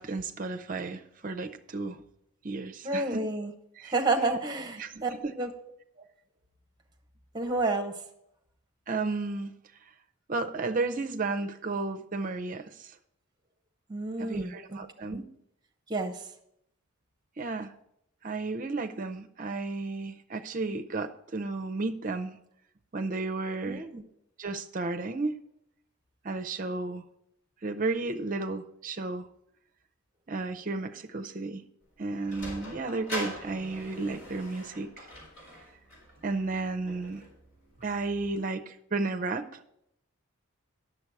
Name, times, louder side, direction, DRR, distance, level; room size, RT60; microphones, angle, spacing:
voice 1, 0.0-2.0 2.4-3.2 3.8-4.4 4.8-5.3 8.9-9.5 10.3-12.6 14.2-15.2 17.4-17.7 18.2-22.4 22.9-23.8 24.4-25.4 26.2-27.0 27.6-29.3 30.3-31.6 32.0-34.9 36.2-37.2 37.8-39.4, right 3 dB, 35° right, 8 dB, 0.5 m, -33 dB
voice 2, 2.8-3.5 3.8-5.1 5.4-5.5 7.3-7.9 13.9-14.8 15.1-15.2 15.9-16.3 23.6-24.0, right 3 dB, 20° right, 4 dB, 0.9 m, -30 dB
Sliding door, 31.8-38.4, left 1 dB, 60° left, 4.3 m, -43 dB
9.5 x 7.0 x 4.7 m, 0.76 s
head